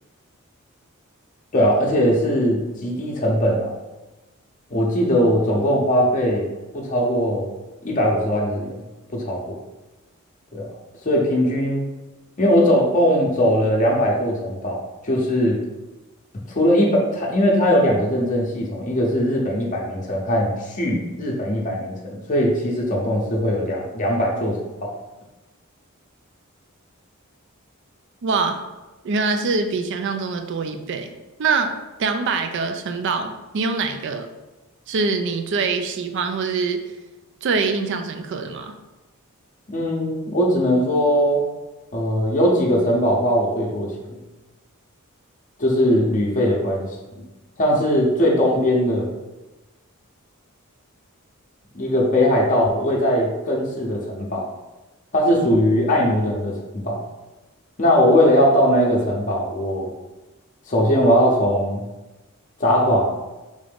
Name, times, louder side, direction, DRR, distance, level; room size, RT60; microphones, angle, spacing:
voice 1, 1.5-3.7 4.7-6.5 6.7-7.5 7.8-8.7 9.1-9.6 10.5-10.6 11.0-11.9 12.4-15.6 16.5-24.9 39.7-41.4 41.9-44.2 45.6-47.2 47.6-49.1 51.7-54.4 55.1-57.0 57.8-59.9 60.7-61.9 62.6-63.1, equal, 35° left, -2 dB, 0.6 m, -20 dB
voice 2, 28.2-28.6 29.0-31.1 31.4-31.7 32.0-34.3 34.9-36.8 37.4-38.7, right 4 dB, 55° right, 7 dB, 0.3 m, -24 dB
3.7 x 2.5 x 3.4 m, 1.1 s
head